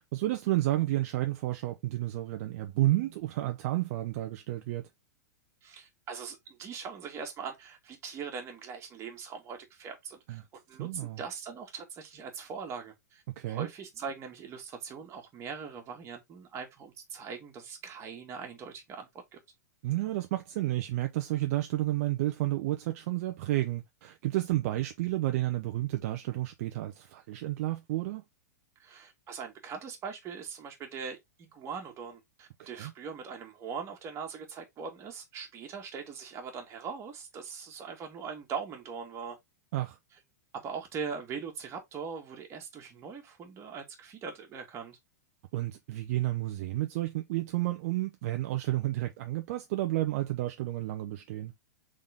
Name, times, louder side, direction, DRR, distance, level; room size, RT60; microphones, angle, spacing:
voice 1, 0.1-4.8 10.3-10.4 10.8-11.2 13.4-13.7 19.8-28.2 32.6-32.9 39.7-40.0 45.5-51.5, right 16 dB, 55° right, 0.6 m, -31 dB
voice 2, 5.6-10.4 10.7-19.4 28.8-39.4 40.5-45.0, right 6 dB, 30° right, 1.8 m, -41 dB
3.9 x 3.6 x 3.5 m
hypercardioid pair, 120°, 9 cm